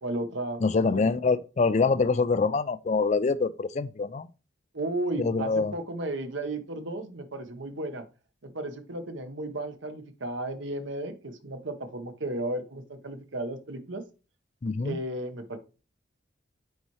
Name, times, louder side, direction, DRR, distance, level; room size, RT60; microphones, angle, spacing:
voice 1, 0.0-1.0 4.7-8.0 8.4-14.0 14.8-15.6, right 2 dB, 85° right, 1.2 m, -34 dB
voice 2, 0.6-4.3 5.2-5.7 14.6-15.0, left 4 dB, 40° left, 0.4 m, -25 dB
9.2 x 4.2 x 3.2 m
head